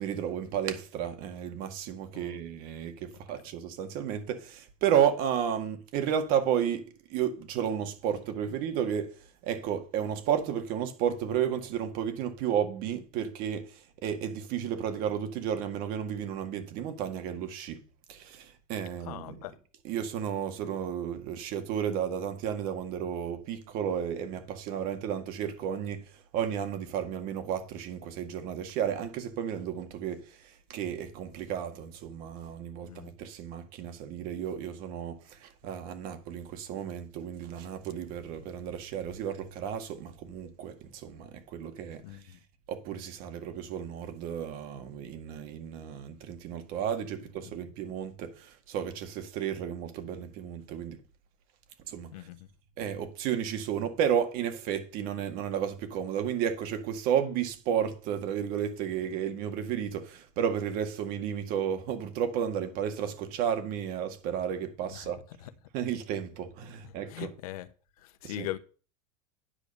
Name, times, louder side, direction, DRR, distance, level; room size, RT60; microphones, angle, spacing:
voice 1, 0.0-9.2 9.4-17.8 18.1-19.4 19.8-42.2 42.7-51.0 51.9-52.3 52.8-65.2 65.7-67.3 68.2-68.5, right 9 dB, 55° right, 1.9 m, -32 dB
voice 2, 19.0-19.6 32.8-33.1 42.0-42.4 47.4-47.5 52.1-52.4 64.9-65.1 65.4-65.5 66.8-67.7 68.0-68.6, left 15 dB, 85° left, 1.0 m, -41 dB
9.8 x 5.2 x 6.7 m
supercardioid pair, 140°, 18 cm